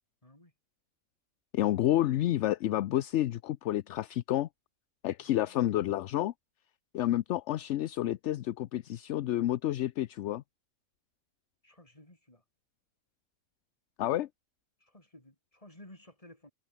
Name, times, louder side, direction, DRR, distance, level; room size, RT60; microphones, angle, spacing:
voice 1, 1.5-4.5 5.0-6.3 6.9-10.4 14.0-14.3, left 13 dB, 65° left, 0.8 m, -29 dB
voice 2, 11.6-12.4 14.8-16.5, left 1 dB, 25° left, 4.7 m, -56 dB
omnidirectional pair, 1.5 m